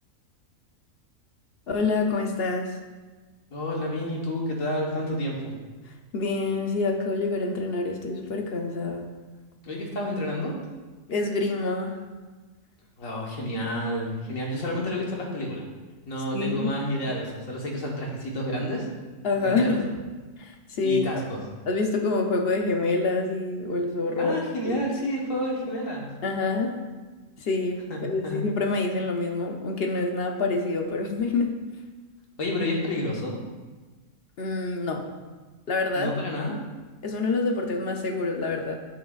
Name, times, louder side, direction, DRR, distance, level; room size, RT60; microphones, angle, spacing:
voice 1, 1.7-2.8 6.1-9.1 11.1-12.0 16.3-16.7 19.2-19.9 20.4-21.0 21.7-24.4 24.6-24.8 26.2-26.8 27.4-31.6 34.4-35.0 35.7-36.1 36.5-36.6 37.0-38.7, left 3 dB, 55° left, 3 dB, 0.8 m, -26 dB
voice 2, 3.5-5.5 9.6-10.5 13.0-15.7 16.1-18.9 19.4-19.8 20.8-21.4 24.2-26.1 27.9-28.4 32.4-33.4 36.0-36.6, left 1 dB, 75° left, -2 dB, 1.7 m, -30 dB
8.0 x 7.5 x 2.4 m, 1.3 s
omnidirectional pair, 1.4 m